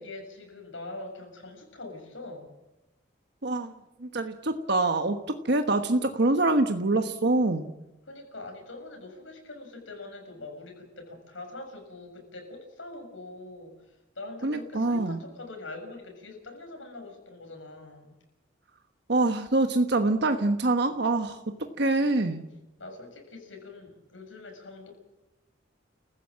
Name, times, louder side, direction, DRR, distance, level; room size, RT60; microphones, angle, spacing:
voice 1, 0.0-2.5 8.1-18.1 22.8-24.9, left 2 dB, 85° left, 2 dB, 7.0 m, -43 dB
voice 2, 3.4-3.7 4.0-7.7 14.4-15.2 19.1-22.4, right 2 dB, 60° right, 7 dB, 1.2 m, -25 dB
30.0 x 15.5 x 7.7 m, 0.99 s
head